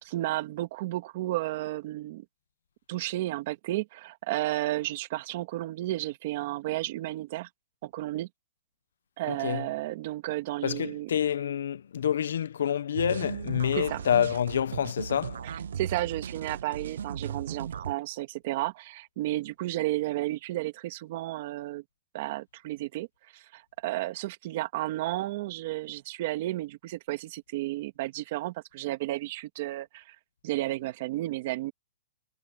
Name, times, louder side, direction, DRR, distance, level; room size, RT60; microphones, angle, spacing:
voice 1, 0.0-2.2 2.9-7.5 7.8-8.3 9.2-11.1 13.8-14.0 15.4-21.8 22.1-23.1 23.3-30.2 30.4-31.7, right 16 dB, 35° right, 2.2 m, -32 dB
voice 2, 9.3-9.7 10.6-15.4, left 9 dB, 70° left, 0.9 m, -28 dB
sound 1, 12.9-17.9, right 8 dB, 70° right, 0.8 m, -37 dB
hypercardioid pair, 170°, 0 cm